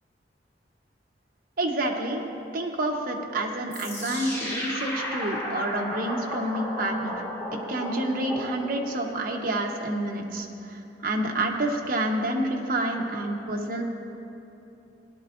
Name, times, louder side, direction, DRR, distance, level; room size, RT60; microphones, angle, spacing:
voice 1, 1.6-2.2 2.5-7.2 7.5-10.5 11.0-13.8, right 1 dB, 50° right, 1 dB, 1.1 m, -28 dB
sound 1, 3.7-9.0, equal, 15° left, 2.5 m, -34 dB
17.5 x 11.5 x 2.6 m, 2.9 s
head